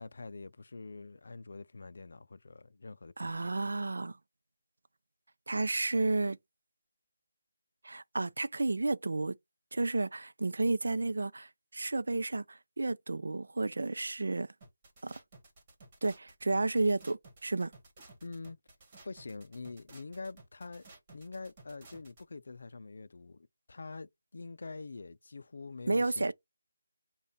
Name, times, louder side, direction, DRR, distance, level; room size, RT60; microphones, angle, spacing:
voice 1, 0.0-3.6 3.8-3.9 18.2-18.6 19.0-20.8 21.1-26.3, left 3 dB, 60° left, 0.5 m, -45 dB
voice 2, 3.2-4.2 5.5-6.4 7.8-9.4 9.7-14.5 15.0-15.2 16.0-17.7 25.9-26.3, right 2 dB, 75° right, 0.5 m, -32 dB
sound 1, 14.6-22.2, right 2 dB, 25° right, 1.4 m, -56 dB
5.3 x 2.4 x 4.1 m
figure-of-eight pair, 170°, 0 cm